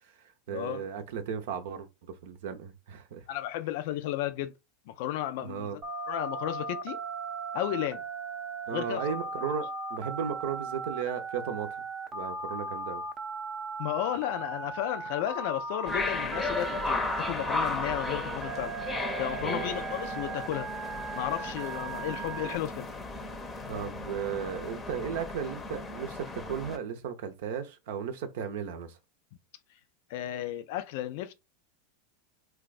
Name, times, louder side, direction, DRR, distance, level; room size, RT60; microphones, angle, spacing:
voice 1, 0.2-3.2 5.4-5.8 8.7-11.8 12.1-13.0 19.4-19.7 23.6-29.0, right 7 dB, 70° right, 0.6 m, -35 dB
voice 2, 3.3-4.5 4.9-5.8 6.1-7.0 7.5-8.0 8.7-9.1 13.8-18.7 19.2-20.7 21.1-22.9 30.1-31.3, left 13 dB, 65° left, 0.4 m, -33 dB
Telephone, 5.8-22.6, right 4 dB, 30° right, 0.6 m, -37 dB
sound 1, 15.9-26.8, left 3 dB, 20° left, 0.7 m, -35 dB
2.3 x 2.3 x 4.0 m
hypercardioid pair, 100°, 0 cm